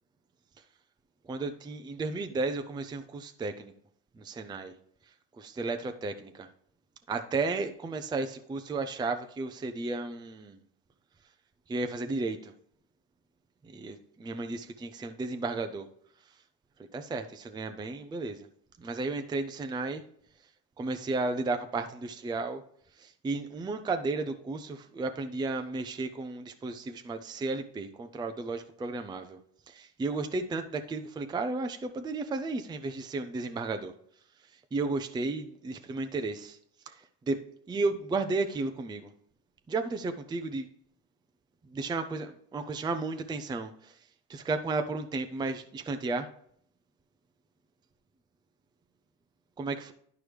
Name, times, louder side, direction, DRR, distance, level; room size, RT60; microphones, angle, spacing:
voice 1, 1.3-3.7 4.2-4.7 5.4-6.5 7.1-10.6 11.7-12.5 13.6-15.9 16.9-18.5 18.8-20.0 20.8-22.6 23.0-29.4 29.7-33.9 34.7-36.6 36.9-37.4 37.7-39.1 39.7-40.7 41.7-44.0 44.3-46.3 49.6-49.9, right 3 dB, 15° right, 7 dB, 0.5 m, -33 dB
11.5 x 4.7 x 3.3 m, 0.65 s
cardioid pair, 110°, 31 cm